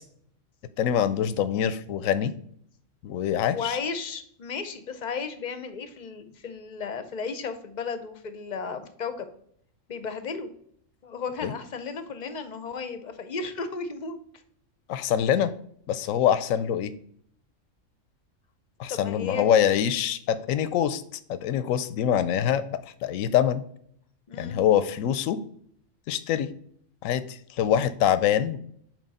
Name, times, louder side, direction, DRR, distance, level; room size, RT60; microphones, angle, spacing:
voice 1, 0.8-2.3 3.0-3.8 11.4-11.5 14.9-15.5 15.9-16.9 18.8-21.0 21.3-23.6 24.4-25.4 26.1-26.5 27.0-28.6, left 9 dB, 90° left, 14 dB, 1.0 m, -24 dB
voice 2, 3.5-9.3 9.9-10.5 11.0-14.2 18.9-19.5 24.3-24.6, left 5 dB, 45° left, 10 dB, 0.6 m, -34 dB
8.3 x 3.2 x 4.0 m, 0.66 s
omnidirectional pair, 1.3 m